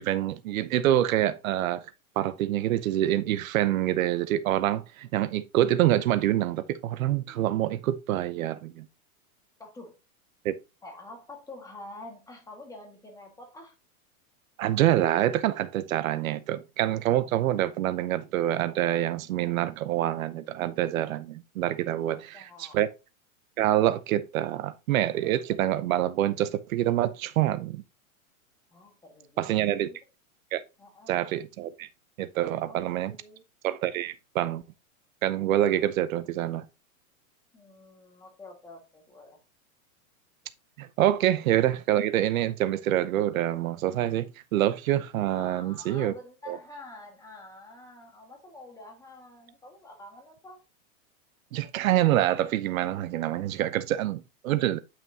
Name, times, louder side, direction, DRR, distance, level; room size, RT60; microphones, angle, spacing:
voice 1, 0.0-1.8 2.2-8.9 10.4-10.5 14.6-22.9 23.6-27.8 29.4-29.9 30.5-30.6 31.1-31.9 32.2-33.1 33.6-34.6 35.2-36.6 40.8-46.1 46.5-46.6 51.5-54.8, right 13 dB, 70° right, 0.8 m, -26 dB
voice 2, 9.6-10.0 10.8-13.7 22.0-22.8 28.7-30.0 30.8-31.3 32.6-33.4 37.5-39.4 45.3-50.6, left 2 dB, 10° left, 1.8 m, -47 dB
9.2 x 5.9 x 2.8 m
supercardioid pair, 150°, 42 cm